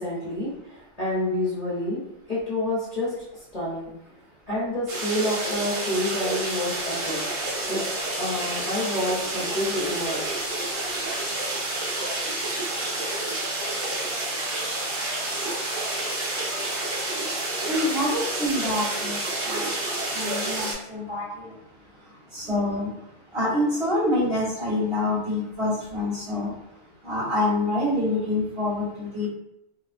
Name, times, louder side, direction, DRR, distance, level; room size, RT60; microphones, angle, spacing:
voice 1, 0.0-3.9 4.5-7.8 8.2-10.3, left 1 dB, 35° left, -10 dB, 0.8 m, -29 dB
sound 1, 4.9-20.7, right 2 dB, 90° right, 1.2 m, -29 dB
voice 2, 17.7-19.2 19.4-19.7 20.1-21.5 22.3-22.9 23.3-26.5 27.0-29.3, left 1 dB, 45° right, -9 dB, 1.5 m, -26 dB
2.8 x 2.1 x 2.4 m, 0.84 s
omnidirectional pair, 1.2 m